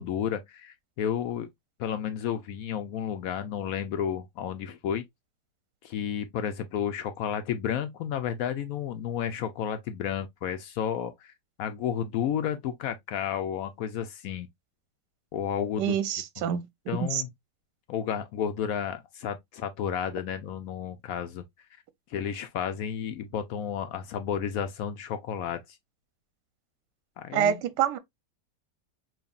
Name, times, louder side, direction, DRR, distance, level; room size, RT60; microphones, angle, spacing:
voice 1, 0.0-1.5 1.8-5.0 5.8-11.3 11.6-14.5 15.3-15.9 16.9-17.3 17.9-21.4 22.1-25.6 27.2-27.6, left 9 dB, 70° left, 0.8 m, -32 dB
voice 2, 15.8-16.7 17.0-17.2 27.3-28.0, right 9 dB, 80° right, 1.2 m, -26 dB
5.3 x 2.8 x 2.3 m
omnidirectional pair, 1.8 m